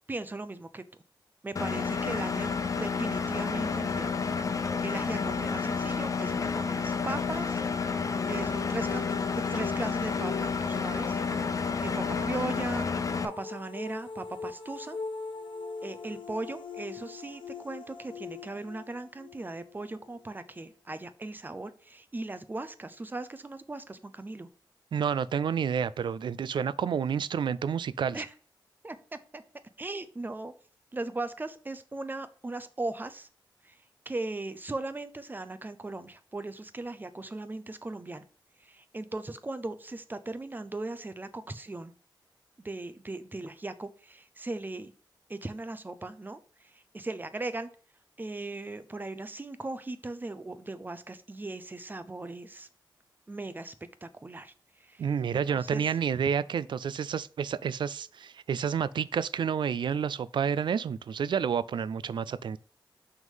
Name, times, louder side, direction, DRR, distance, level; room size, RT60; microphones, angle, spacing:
voice 1, 0.1-0.8 1.4-2.5 2.8-4.1 4.5-7.6 8.2-11.2 11.8-12.9 13.2-15.0 15.8-24.5 28.1-28.3 28.8-29.0 29.3-29.4 29.8-30.5 30.9-33.3 33.6-33.8 34.1-38.2 38.6-41.9 42.6-44.9 45.3-47.7 48.2-52.7 53.3-53.7 54.0-54.5 54.8-55.8, right 2 dB, 25° right, 0.7 m, -38 dB
Engine, 1.6-13.3, left 5 dB, 40° left, 0.6 m, -30 dB
sound 1, 7.7-20.6, left 5 dB, 80° left, 0.9 m, -42 dB
voice 2, 24.9-28.2 55.0-62.6, right 7 dB, 70° right, 0.3 m, -29 dB
6.1 x 3.7 x 5.6 m
wide cardioid pair, 95°, 8 cm